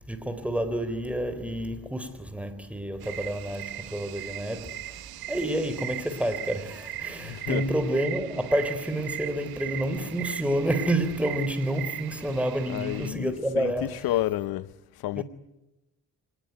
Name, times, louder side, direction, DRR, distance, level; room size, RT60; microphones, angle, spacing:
voice 1, 0.0-14.1 15.2-15.3, right 1 dB, 5° right, 3.7 m, -29 dB
sound 1, 3.0-13.1, right 14 dB, 85° right, 1.4 m, -38 dB
voice 2, 7.2-7.6 12.7-13.7 14.0-15.2, left 15 dB, 85° left, 0.8 m, -30 dB
26.0 x 20.0 x 9.4 m
cardioid pair, 105°, 36 cm